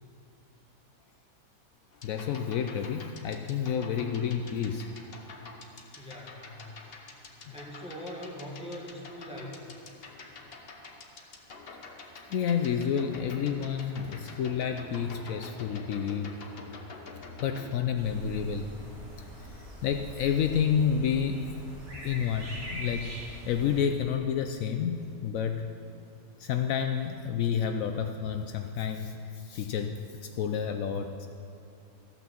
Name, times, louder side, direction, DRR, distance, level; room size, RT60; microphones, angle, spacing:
sound 1, 1.9-17.7, left 3 dB, 45° left, 1.0 m, -47 dB
voice 1, 2.0-4.9 7.5-7.6 12.3-16.4 17.4-18.7 19.2-21.6 22.0-23.1 23.5-25.6 26.4-31.3, left 7 dB, 70° left, 6 dB, 0.9 m, -30 dB
voice 2, 6.0-7.1 7.5-9.7, left 1 dB, 5° right, -3 dB, 1.5 m, -42 dB
sound 2, 17.9-23.8, equal, 70° right, 3.1 m, -43 dB
14.0 x 6.0 x 7.0 m, 2.7 s
omnidirectional pair, 1.5 m